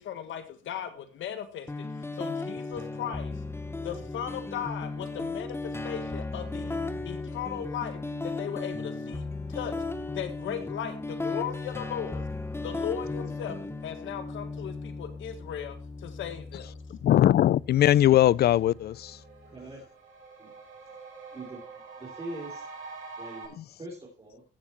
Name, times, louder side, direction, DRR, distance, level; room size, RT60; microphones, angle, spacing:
voice 1, 0.0-1.7 2.2-3.3 3.8-6.8 7.0-9.7 10.1-12.3 12.6-13.6 13.8-16.8, left 9 dB, 75° left, 1.6 m, -37 dB
sound 1, 1.7-19.6, left 3 dB, 10° left, 1.1 m, -36 dB
voice 2, 16.9-19.2, left 12 dB, 55° left, 0.4 m, -21 dB
sound 2, 17.7-17.8 18.1-23.5, right 4 dB, 75° right, 6.4 m, -46 dB
voice 3, 19.5-19.8 20.4-20.5 21.3-22.7 23.2-24.4, right 2 dB, 30° right, 3.5 m, -43 dB
14.5 x 7.2 x 4.4 m
cardioid pair, 90°, 20 cm